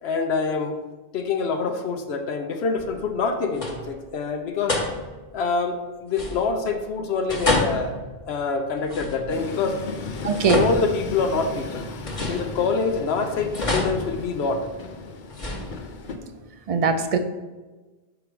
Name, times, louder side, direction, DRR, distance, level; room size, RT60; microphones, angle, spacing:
voice 1, 0.0-0.8 1.1-4.8 5.3-8.0 8.3-9.8 10.4-11.9 12.3-14.7, left 4 dB, 85° left, 5 dB, 0.9 m, -25 dB
sound 1, 2.8-3.2 3.5-4.1 4.7-5.3 6.1-6.8 7.3-9.5 10.1-11.5 12.0-13.0 13.5-14.8 15.3-16.2, left 2 dB, 35° left, 1.1 m, -29 dB
Train, 9.3-16.2, left 4 dB, 55° left, 0.7 m, -36 dB
voice 2, 10.2-10.7 16.7-17.2, right 5 dB, 45° right, 8 dB, 0.5 m, -21 dB
6.0 x 4.7 x 5.0 m, 1.2 s
omnidirectional pair, 1.1 m